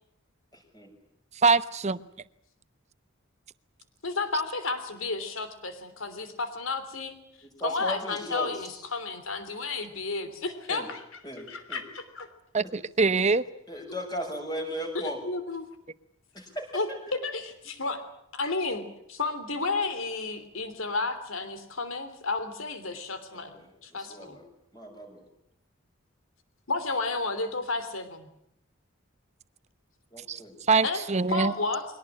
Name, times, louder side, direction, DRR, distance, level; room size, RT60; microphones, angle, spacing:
voice 1, 0.5-0.9 7.4-8.7 10.7-10.9 11.2-11.8 13.0-13.2 13.7-15.2 16.3-17.1 23.3-24.4 24.7-25.3 30.1-30.6, equal, 20° left, 3 dB, 6.3 m, -37 dB
voice 2, 1.4-2.0 12.5-13.4 30.3-30.4 30.7-31.5, right 4 dB, 35° right, 14 dB, 0.9 m, -23 dB
voice 3, 4.0-7.1 7.6-11.0 11.5-12.3 15.2-15.7 16.7-18.0 18.3-24.4 26.7-28.3 30.8-31.8, left 3 dB, 80° left, 10 dB, 3.2 m, -32 dB
23.5 x 18.5 x 10.0 m, 0.76 s
head